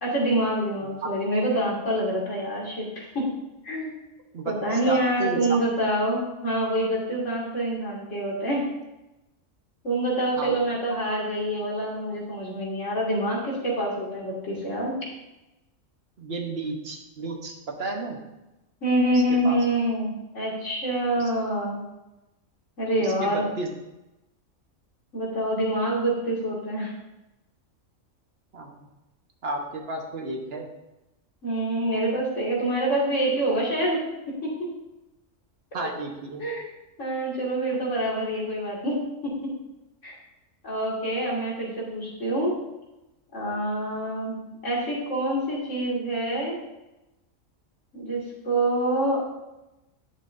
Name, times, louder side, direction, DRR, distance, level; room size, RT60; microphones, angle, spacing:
voice 1, 0.0-3.3 3.6-3.9 4.4-8.7 9.8-15.0 18.8-21.8 22.8-23.4 25.1-26.9 31.4-34.7 35.8-35.9 36.4-36.7 37.0-39.5 40.0-40.1 40.6-42.6 43.3-44.4 44.6-46.6 47.9-49.2, right 1 dB, 60° left, -5 dB, 2.7 m, -26 dB
voice 2, 4.3-5.6 10.4-10.6 16.2-18.2 19.1-19.6 23.0-23.7 28.5-28.9 29.4-30.7 35.7-36.4, right 2 dB, 50° right, 1 dB, 1.3 m, -32 dB
10.5 x 7.4 x 2.6 m, 0.98 s
omnidirectional pair, 1.4 m